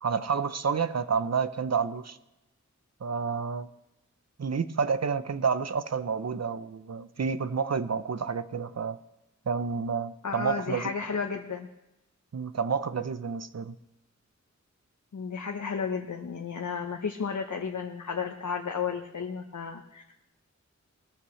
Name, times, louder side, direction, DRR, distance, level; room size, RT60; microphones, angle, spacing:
voice 1, 0.0-2.2 3.0-3.7 4.4-9.0 9.5-10.9 12.3-13.7, right 6 dB, 60° right, 13 dB, 0.7 m, -29 dB
voice 2, 10.2-11.7 15.1-20.2, left 6 dB, 80° left, 3 dB, 1.0 m, -33 dB
20.0 x 14.0 x 3.2 m, 0.91 s
wide cardioid pair, 80°, 30 cm